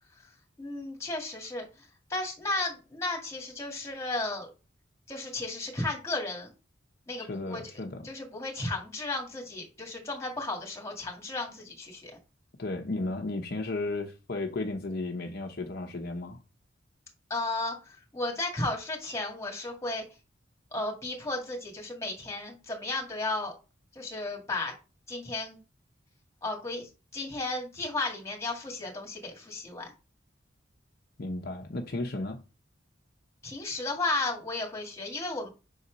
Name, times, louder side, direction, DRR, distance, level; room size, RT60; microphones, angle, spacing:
voice 1, 0.6-4.5 5.1-6.5 7.1-7.6 8.0-12.1 17.3-20.0 20.7-23.5 24.0-24.7 25.1-25.6 26.4-29.9 33.4-35.5, left 2 dB, 15° left, 2.0 m, -34 dB
voice 2, 7.2-8.1 12.6-16.4 31.2-32.4, left 2 dB, 55° left, 0.8 m, -34 dB
5.6 x 4.2 x 5.1 m
head